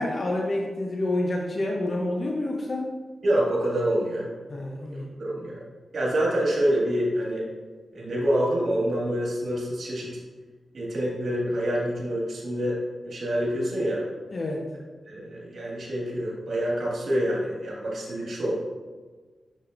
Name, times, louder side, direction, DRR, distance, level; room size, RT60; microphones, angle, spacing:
voice 1, 0.0-2.9 4.5-5.1 14.3-14.6, left 1 dB, 45° left, 0 dB, 0.6 m, -28 dB
voice 2, 3.2-4.3 4.9-5.6 5.9-7.5 7.9-10.2 10.7-12.8 13.0-14.0 15.1-18.6, right 1 dB, 65° right, -3 dB, 1.7 m, -26 dB
6.6 x 5.8 x 2.5 m, 1.4 s
wide cardioid pair, 105°, 0 cm